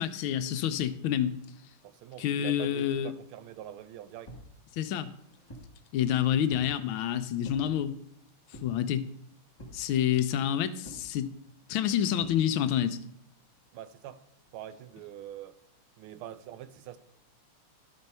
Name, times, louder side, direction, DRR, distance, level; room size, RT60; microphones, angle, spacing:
voice 1, 0.0-1.3 2.2-3.1 4.7-5.1 5.9-8.0 8.6-9.1 9.7-11.3 11.7-13.0, left 10 dB, 75° left, 1.3 m, -28 dB
voice 2, 1.8-4.3 13.7-14.2 14.5-15.6 16.0-17.0, right 11 dB, 80° right, 1.5 m, -44 dB
sound 1, 4.3-4.5 5.1-5.8 6.5-6.8 7.4-7.7 8.5-8.9 9.6-9.9 10.8-11.1 12.2-12.4, equal, 20° left, 1.9 m, -47 dB
12.0 x 4.5 x 5.3 m
omnidirectional pair, 2.4 m